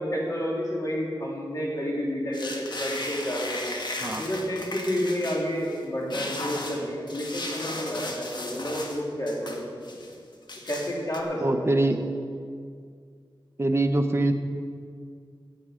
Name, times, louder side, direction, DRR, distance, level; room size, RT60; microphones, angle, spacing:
voice 1, 0.0-3.7 4.1-9.6 10.6-11.9, equal, 40° left, -4 dB, 3.3 m, -30 dB
sound 1, 2.3-5.8 6.1-9.0 9.3-10.1 10.5-11.2, left 2 dB, 55° left, 1.4 m, -36 dB
voice 2, 11.4-12.0 13.6-14.3, right 2 dB, 30° right, 6 dB, 1.0 m, -23 dB
16.0 x 8.6 x 5.1 m, 2.1 s
wide cardioid pair, 75°, 9 cm